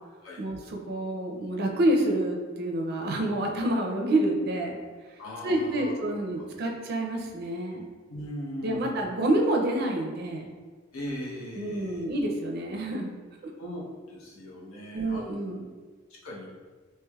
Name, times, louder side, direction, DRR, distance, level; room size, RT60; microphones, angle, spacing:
voice 1, 0.4-4.8 5.4-7.9 8.6-10.5 11.6-13.1 13.4-13.5 14.9-15.7, right 1 dB, 50° right, 1 dB, 0.4 m, -28 dB
voice 2, 5.2-5.9 8.1-9.0 10.9-12.0 13.6-13.8 14.1-15.2 16.1-16.5, equal, 85° left, -4 dB, 0.8 m, -38 dB
3.2 x 3.1 x 2.3 m, 1.4 s
head